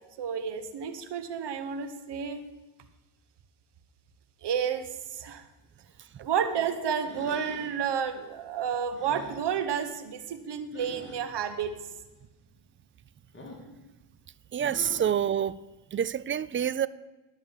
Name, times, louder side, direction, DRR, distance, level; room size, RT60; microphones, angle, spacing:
voice 1, 0.2-2.4 4.4-5.4 6.2-11.7, right 7 dB, 65° right, 1.4 m, -31 dB
sound 1, 7.0-7.8 8.9-9.4 10.7-11.2 13.3-13.7 14.6-15.1, left 2 dB, 25° left, 3.4 m, -44 dB
voice 2, 14.5-15.6 15.9-16.9, right 9 dB, 30° right, 0.4 m, -27 dB
12.5 x 6.5 x 7.2 m
cardioid pair, 80°, 45 cm